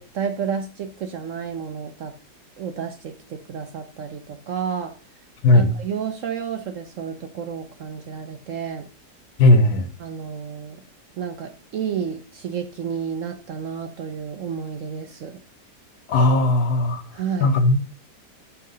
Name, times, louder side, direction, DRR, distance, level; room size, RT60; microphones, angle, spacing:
voice 1, 0.1-2.1 2.6-4.9 5.5-8.9 10.0-10.8 11.2-15.4 17.1-17.6, right 7 dB, 65° right, 8 dB, 0.8 m, -31 dB
voice 2, 9.4-9.9 16.1-17.0 17.4-17.8, left 2 dB, 65° left, 6 dB, 1.5 m, -16 dB
5.7 x 3.6 x 5.2 m, 0.37 s
omnidirectional pair, 1.8 m